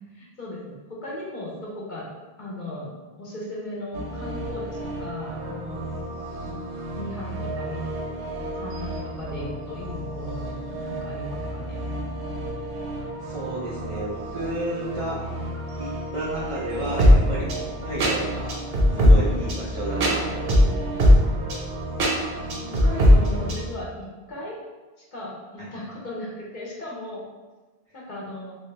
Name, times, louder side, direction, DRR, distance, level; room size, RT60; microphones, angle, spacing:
voice 1, 0.1-2.1 2.4-6.0 6.5-6.6 7.0-7.9 8.6-11.8 18.9-19.5 22.6-23.9 24.3-24.6 25.1-27.2 27.9-28.6, left 1 dB, 50° left, -5 dB, 0.8 m, -36 dB
sound 1, 3.9-23.6, equal, 70° right, 0.9 m, -24 dB
voice 2, 13.2-15.2 15.8-18.6 19.0-21.0 22.9-23.0 25.6-25.7, right 2 dB, 50° right, -7 dB, 0.4 m, -32 dB
2.9 x 2.3 x 3.1 m, 1.3 s
omnidirectional pair, 1.1 m